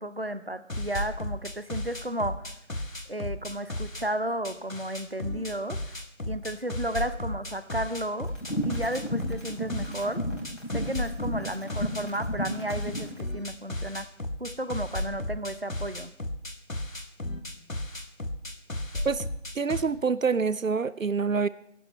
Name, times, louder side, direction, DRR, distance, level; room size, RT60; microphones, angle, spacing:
voice 1, 0.0-2.5 3.1-5.8 6.3-8.3 8.6-10.2 10.7-14.1 14.4-16.1, right 1 dB, 50° right, 13 dB, 0.7 m, -33 dB
sound 1, 0.7-4.1 4.4-19.8, left 1 dB, 85° left, 1.5 m, -35 dB
sound 2, 8.3-13.1, equal, 65° left, 4.4 m, -33 dB
voice 2, 19.6-21.5, right 5 dB, 80° right, 18 dB, 0.6 m, -26 dB
22.5 x 11.5 x 3.1 m, 0.72 s
figure-of-eight pair, 180°, 39 cm